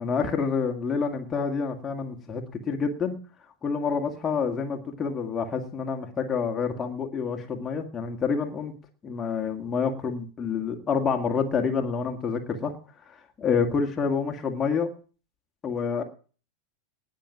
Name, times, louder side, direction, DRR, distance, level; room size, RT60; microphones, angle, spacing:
voice 1, 0.0-3.2 3.6-8.7 9.0-12.7 13.1-14.9 15.6-16.0, left 5 dB, 20° left, 2 dB, 2.1 m, -28 dB
19.0 x 6.4 x 7.3 m, 0.40 s
figure-of-eight pair, 90°, 0 cm